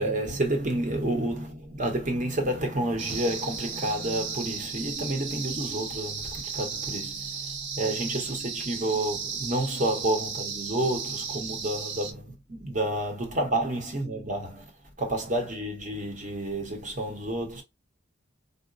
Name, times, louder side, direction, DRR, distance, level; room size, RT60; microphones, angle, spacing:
voice 1, 0.0-14.7 15.0-17.6, right 1 dB, 40° right, 0.8 m, -30 dB
sound 1, 3.0-12.1, right 6 dB, 65° right, 0.5 m, -35 dB
3.8 x 2.1 x 2.4 m
head